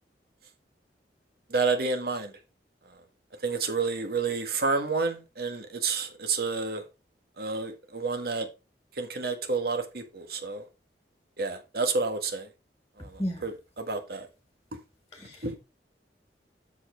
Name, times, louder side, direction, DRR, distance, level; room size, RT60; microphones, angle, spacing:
voice 1, 1.5-2.3 3.4-6.8 7.4-8.5 9.0-10.7 11.4-12.5 13.0-14.3 14.7-14.8 15.4-15.6, right 4 dB, 60° right, 1.7 m, -30 dB
voice 2, 15.1-15.6, equal, 20° left, 1.7 m, -34 dB
7.8 x 7.0 x 4.5 m
head